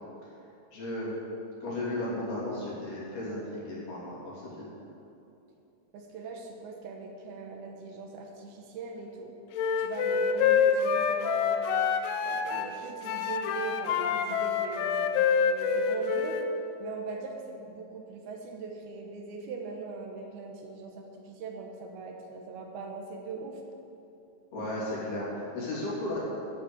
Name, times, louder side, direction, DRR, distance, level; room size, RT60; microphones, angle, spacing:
voice 1, 0.7-1.2 1.6-4.7 24.5-26.2, left 1 dB, 70° left, -7 dB, 5.0 m, -34 dB
voice 2, 5.9-9.4 9.8-11.6 12.3-16.4 16.8-23.6, right 4 dB, 75° right, 2 dB, 2.8 m, -41 dB
Wind instrument woodwind instrument, 9.5-12.7 13.0-16.5, left 6 dB, 85° left, 1.9 m, -27 dB
11.5 x 7.4 x 8.0 m, 2.8 s
omnidirectional pair, 4.7 m